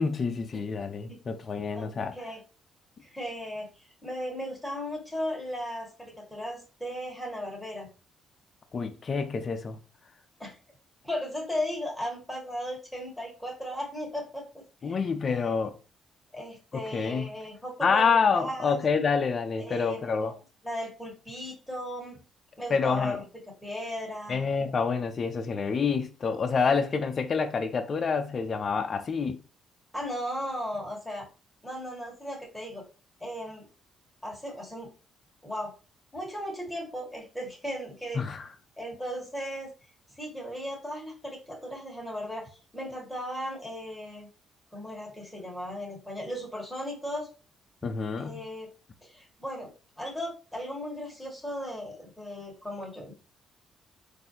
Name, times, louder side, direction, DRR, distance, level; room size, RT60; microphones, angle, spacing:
voice 1, 0.0-2.1 8.7-9.8 14.8-15.8 16.7-17.3 17.8-20.3 22.7-23.2 24.3-29.4 38.1-38.5 47.8-48.4, left 5 dB, 45° left, 0.6 m, -27 dB
voice 2, 1.7-2.4 3.0-7.9 10.4-10.6 11.0-14.4 14.8-15.0 15.3-15.6 16.3-18.8 19.6-20.4 20.6-22.2 22.6-23.2 23.6-24.7 29.9-31.3 31.6-32.8 33.2-33.7 34.2-34.9 35.4-35.7 36.1-38.2 38.8-39.7 40.1-44.3 44.7-47.3 48.2-48.7 49.0-53.1, equal, 5° left, 1.7 m, -36 dB
4.1 x 2.7 x 2.7 m
cardioid pair, 90°, 0 cm